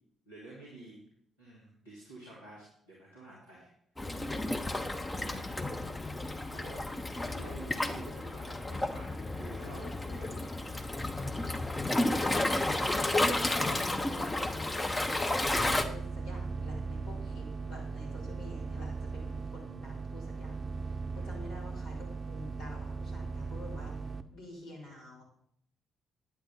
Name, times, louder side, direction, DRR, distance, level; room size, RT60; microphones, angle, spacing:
voice 1, 0.3-1.0 1.4-3.7 5.1-5.6 6.5-7.1 7.3-10.9 11.2-11.3 21.2-21.3, right 2 dB, 85° left, -9 dB, 2.3 m, -49 dB
Waves surf, 4.0-15.8, left 2 dB, 20° left, 0.9 m, -32 dB
voice 2, 5.1-6.0 7.1-7.4 8.1-8.3 13.1-23.9 24.3-25.2, left 1 dB, 70° left, -5 dB, 4.1 m, -49 dB
sound 1, 15.5-24.2, right 4 dB, 35° right, 0.7 m, -38 dB
10.0 x 8.4 x 4.2 m, 0.70 s
figure-of-eight pair, 40°, 0 cm